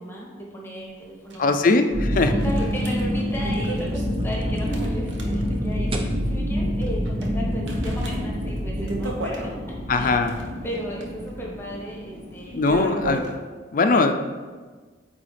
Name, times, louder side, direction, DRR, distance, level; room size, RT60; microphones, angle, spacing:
voice 1, 0.0-1.6 2.3-10.2 10.6-12.6, equal, 15° left, -3 dB, 1.0 m, -35 dB
sound 1, 1.3-1.4 1.7-1.8 2.4-5.8 6.1-6.2 6.8-7.3 7.7-9.5 10.1-13.4, right 1 dB, 85° right, 0.9 m, -34 dB
voice 2, 1.4-2.3 9.9-10.4 12.5-13.3 13.7-14.1, left 3 dB, 50° left, 7 dB, 0.4 m, -20 dB
sound 2, 1.9-13.1, equal, 65° right, 1.3 m, -27 dB
sound 3, 2.5-7.8, right 2 dB, 30° right, 0.5 m, -40 dB
8.0 x 3.9 x 3.2 m, 1.4 s
head